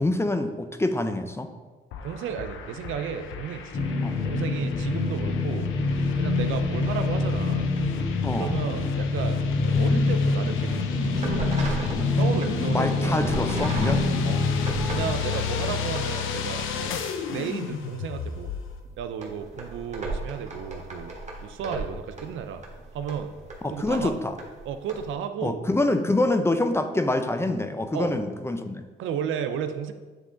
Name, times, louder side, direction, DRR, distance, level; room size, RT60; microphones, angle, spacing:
voice 1, 0.0-1.5 4.0-4.2 8.2-8.5 12.7-14.0 15.7-15.8 23.6-24.3 25.4-28.9, left 2 dB, 15° left, 7 dB, 0.6 m, -26 dB
sound 1, 1.9-18.8, left 7 dB, 85° left, 0.7 m, -34 dB
voice 2, 2.0-5.7 6.2-7.7 8.4-13.3 14.2-14.4 14.9-16.9 17.3-18.5 19.0-21.1 21.4-22.6 22.9-23.3 23.7-24.2 24.7-25.6 27.9-28.1 29.0-29.9, right 7 dB, 80° right, 9 dB, 0.6 m, -33 dB
sound 2, 3.7-15.1, left 3 dB, 45° left, 1.1 m, -25 dB
sound 3, 9.7-10.2 10.5-10.8 11.2-12.5 13.2-15.5 15.8-16.0 16.5-17.2 17.6-17.7 18.1-18.2 18.8-25.1, right 2 dB, 35° right, 1.5 m, -37 dB
9.0 x 3.7 x 3.8 m, 1.3 s
cardioid pair, 90°, 20 cm